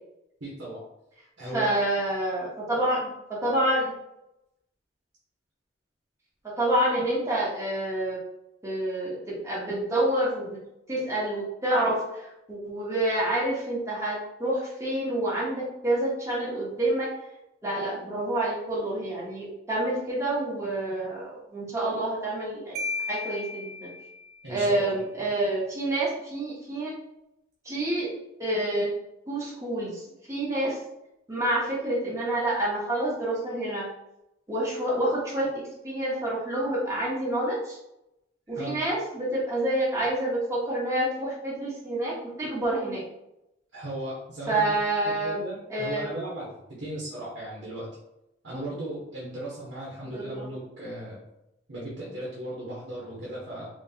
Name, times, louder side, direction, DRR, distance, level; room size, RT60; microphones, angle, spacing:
voice 1, 0.4-0.8 1.4-1.7 24.4-24.9 38.6-38.8 43.7-44.6 45.0-47.9 48.4-51.2 51.7-53.7, right 1 dB, 75° right, -6 dB, 1.1 m, -36 dB
voice 2, 1.5-3.1 3.4-3.9 6.4-8.2 8.6-10.6 10.9-17.1 17.6-22.8 23.1-23.9 24.5-26.9 27.6-28.1 28.4-28.9 29.3-30.0 30.3-30.8 31.3-33.9 34.5-37.8 38.5-43.0 44.5-45.4 45.7-46.1 50.0-50.5, right 1 dB, 15° right, -6 dB, 1.1 m, -28 dB
Marimba xylophone, 22.7-24.5, left 3 dB, 55° right, 0.5 m, -34 dB
3.8 x 2.9 x 2.8 m, 0.86 s
head